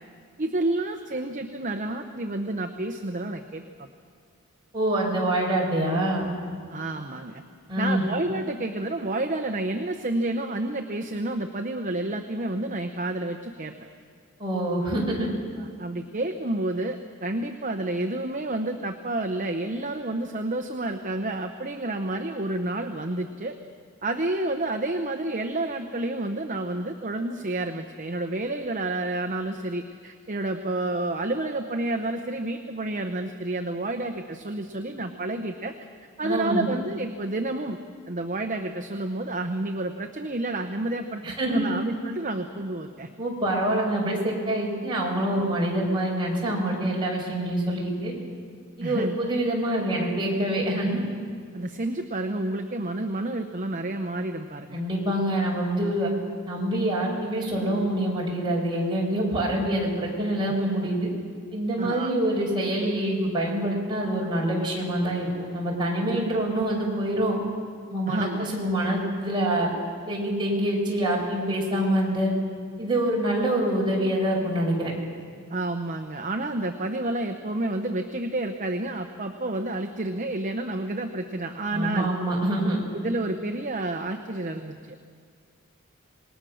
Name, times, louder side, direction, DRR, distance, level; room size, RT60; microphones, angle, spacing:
voice 1, 0.4-3.6 6.7-7.4 7.8-13.7 15.6-23.5 24.0-35.7 36.2-37.8 38.1-43.1 48.8-49.2 51.5-54.8 61.8-62.1 68.1-68.4 75.5-82.1 82.9-85.0, right 2 dB, 35° right, 5 dB, 0.9 m, -30 dB
voice 2, 4.7-6.3 7.7-8.0 14.4-15.3 36.2-36.7 41.2-41.7 43.2-48.1 48.8-51.0 54.7-56.1 56.5-61.1 61.5-67.4 67.9-69.7 70.1-72.3 72.8-74.9 81.7-82.8, right 1 dB, 20° right, -3 dB, 5.5 m, -26 dB
26.5 x 20.0 x 6.4 m, 2.1 s
head